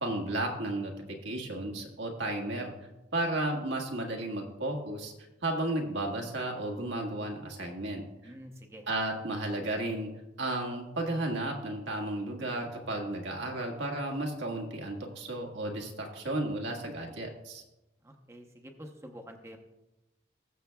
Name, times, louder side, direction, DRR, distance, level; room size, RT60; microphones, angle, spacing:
voice 1, 0.0-2.7 3.1-5.1 5.4-8.3 8.9-10.1 10.4-17.6, right 1 dB, 90° right, 1 dB, 1.7 m, -33 dB
voice 2, 8.2-8.9 18.0-19.6, equal, 15° right, 3 dB, 0.8 m, -47 dB
20.0 x 7.0 x 2.3 m, 1.0 s
head